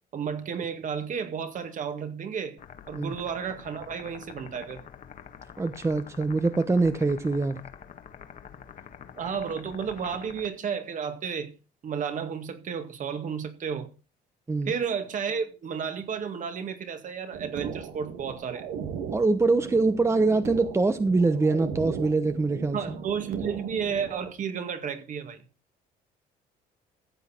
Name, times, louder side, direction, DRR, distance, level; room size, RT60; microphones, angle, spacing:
voice 1, 0.1-2.6 2.9-4.8 9.2-11.5 11.8-13.9 14.7-18.7 22.7-25.4, right 7 dB, 50° right, 2.1 m, -32 dB
sound 1, 2.6-10.5, left 8 dB, 50° left, 1.6 m, -46 dB
voice 2, 5.6-7.6 14.5-14.7 19.1-23.0, right 3 dB, 15° right, 0.9 m, -24 dB
sound 2, 17.3-24.3, right 7 dB, 90° right, 2.2 m, -38 dB
14.5 x 8.1 x 4.4 m
cardioid pair, 110°, 17 cm